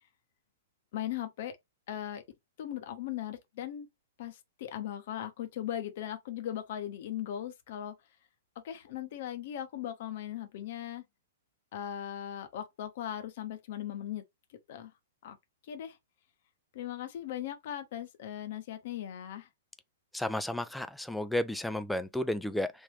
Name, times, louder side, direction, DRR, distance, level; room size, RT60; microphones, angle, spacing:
voice 1, 0.9-1.6 1.9-2.2 2.6-3.9 4.2-8.0 8.6-11.0 11.7-14.2 14.7-14.9 15.2-15.4 15.7-16.0 16.7-19.5, left 11 dB, 50° left, 0.8 m, -38 dB
voice 2, 20.1-22.7, left 1 dB, ahead, 0.4 m, -32 dB
3.5 x 2.5 x 3.2 m
figure-of-eight pair, 105°, 0 cm